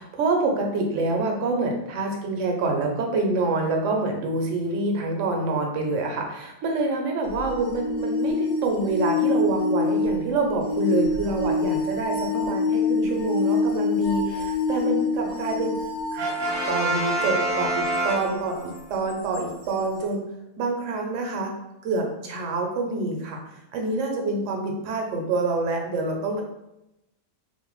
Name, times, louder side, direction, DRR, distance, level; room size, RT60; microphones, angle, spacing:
voice 1, 0.0-15.8 16.1-16.4 16.7-20.2 20.6-21.6 21.8-23.4 23.7-26.4, right 3 dB, 70° right, 2 dB, 0.9 m, -26 dB
sound 1, 7.3-17.0 19.3-19.4, left 3 dB, 75° left, 1.1 m, -26 dB
Brass instrument, 16.2-18.8, right 1 dB, 30° right, 0.6 m, -26 dB
2.5 x 2.1 x 3.0 m, 0.88 s
omnidirectional pair, 1.4 m